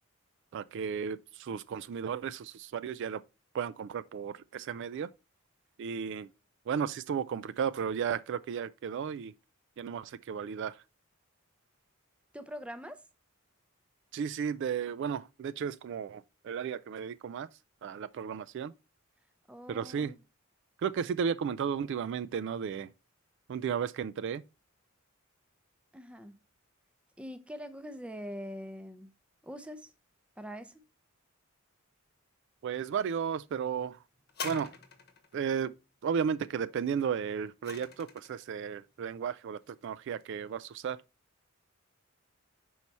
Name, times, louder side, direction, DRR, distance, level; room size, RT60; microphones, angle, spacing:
voice 1, 0.5-3.2 3.5-5.1 5.8-6.3 6.7-9.3 9.8-10.8 14.1-17.5 17.8-18.7 19.7-20.1 20.8-22.9 23.5-24.4 32.6-34.0 34.4-34.7 35.3-35.7 36.0-41.0, right 7 dB, 60° right, 0.3 m, -34 dB
voice 2, 12.3-13.0 19.5-20.2 25.9-26.4 27.2-29.1 29.4-29.9 30.4-30.8, equal, 5° right, 0.5 m, -43 dB
sound 1, 34.3-35.3 37.1-38.4 39.2-39.3, left 4 dB, 50° left, 1.0 m, -43 dB
5.5 x 4.7 x 4.1 m
head